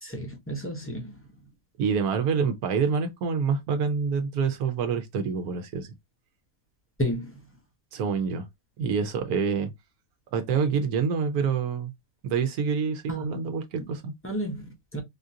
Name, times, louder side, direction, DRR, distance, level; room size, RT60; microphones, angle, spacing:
voice 1, 0.0-1.4 7.0-7.4 13.1-13.4 13.8-13.9 14.2-15.0, equal, 15° left, 0.6 m, -32 dB
voice 2, 1.8-5.9 7.9-8.5 8.8-9.7 10.3-11.9 12.2-14.1, right 6 dB, 85° right, 1.2 m, -26 dB
3.7 x 2.5 x 2.6 m
omnidirectional pair, 1.5 m